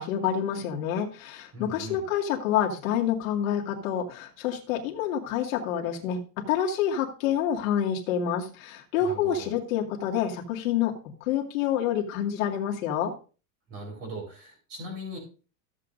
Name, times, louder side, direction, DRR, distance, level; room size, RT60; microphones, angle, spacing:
voice 1, 0.0-6.2 6.5-10.9 11.2-13.1, left 9 dB, 75° left, 0 dB, 2.2 m, -27 dB
voice 2, 1.5-2.0 9.0-9.5 13.7-15.2, equal, 35° right, 1 dB, 4.2 m, -39 dB
14.5 x 7.8 x 2.6 m, 0.35 s
supercardioid pair, 170°, 41 cm